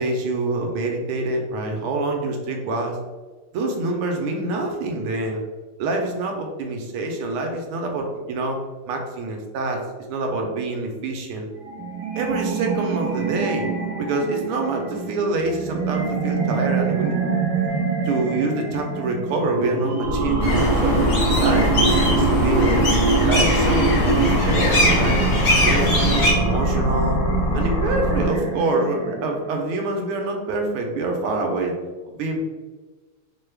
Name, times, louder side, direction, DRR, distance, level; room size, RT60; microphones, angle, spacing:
voice 1, 0.0-3.0 3.5-5.4 5.8-8.6 8.9-9.8 10.1-11.5 12.1-13.7 14.0-17.2 18.0-21.0 21.3-25.2 25.6-27.2 27.5-31.7 32.1-32.4, right 2 dB, 85° right, 2 dB, 1.6 m, -26 dB
sound 1, 11.6-29.6, right 5 dB, 65° right, 1.2 m, -25 dB
sound 2, 20.0-28.2, left 1 dB, 75° left, 1.6 m, -24 dB
sound 3, 20.4-26.3, left 1 dB, 55° left, 0.7 m, -22 dB
4.9 x 2.3 x 3.2 m, 1.3 s
omnidirectional pair, 2.4 m